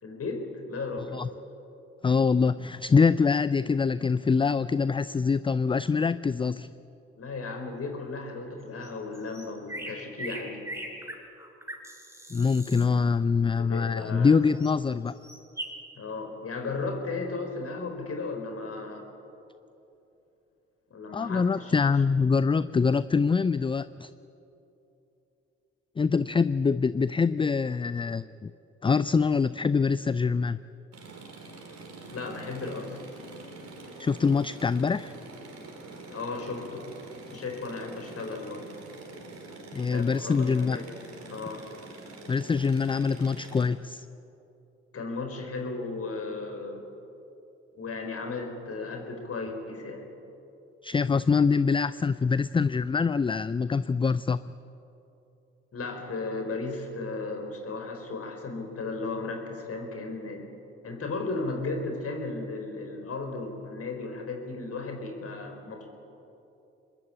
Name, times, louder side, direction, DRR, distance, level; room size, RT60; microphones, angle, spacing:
voice 1, 0.0-1.2 7.2-10.6 13.6-14.4 15.9-19.1 20.9-21.7 32.1-33.0 36.1-36.9 37.3-38.7 39.7-40.9 41.3-41.7 44.9-46.8 47.8-50.1 55.7-60.4 60.8-65.9, left 3 dB, 45° left, 4 dB, 4.7 m, -35 dB
voice 2, 2.0-6.7 12.3-15.2 21.1-24.1 26.0-28.5 28.8-30.6 34.0-35.1 39.7-40.8 42.3-44.1 50.8-54.5, left 5 dB, 15° left, 17 dB, 0.5 m, -24 dB
sound 1, 8.8-8.9 9.1-12.9 14.6-14.7 15.1-15.7, right 1 dB, 10° right, 4.9 m, -39 dB
sound 2, 30.9-43.6, right 2 dB, 50° right, 5.2 m, -45 dB
25.0 x 21.0 x 8.8 m, 2.9 s
figure-of-eight pair, 45°, 34 cm